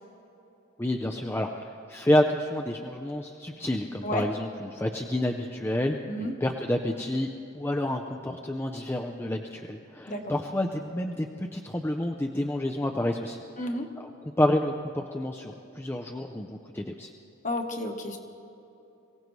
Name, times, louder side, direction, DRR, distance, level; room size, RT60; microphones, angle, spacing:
voice 1, 0.8-7.3 7.5-13.4 14.0-17.1, left 1 dB, 10° left, 3 dB, 0.5 m, -29 dB
voice 2, 13.6-13.9 17.4-18.2, left 1 dB, 40° left, 4 dB, 1.2 m, -31 dB
23.5 x 16.5 x 3.1 m, 3.0 s
head